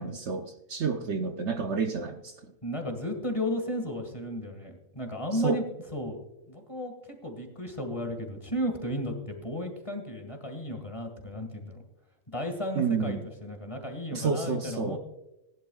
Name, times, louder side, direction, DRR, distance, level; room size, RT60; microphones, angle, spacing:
voice 1, 0.0-2.3 5.4-5.6 12.8-13.2 14.1-15.0, right 5 dB, 60° right, 5 dB, 1.0 m, -29 dB
voice 2, 2.6-6.2 6.5-11.8 12.3-15.0, left 1 dB, 25° left, 3 dB, 2.0 m, -34 dB
19.0 x 11.0 x 2.4 m, 0.98 s
omnidirectional pair, 1.4 m